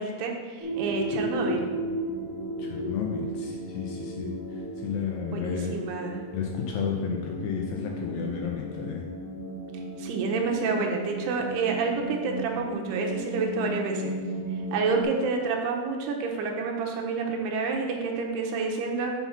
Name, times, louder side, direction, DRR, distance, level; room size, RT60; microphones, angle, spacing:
voice 1, 0.0-1.7 5.3-6.2 10.0-14.1 14.7-19.1, right 4 dB, 90° right, 1 dB, 2.9 m, -29 dB
sound 1, 0.6-15.0, right 1 dB, 45° right, 1.1 m, -35 dB
voice 2, 2.6-5.8 6.3-9.1, left 7 dB, 80° left, 0 dB, 2.1 m, -32 dB
5.9 x 5.7 x 5.7 m, 1.5 s
omnidirectional pair, 4.6 m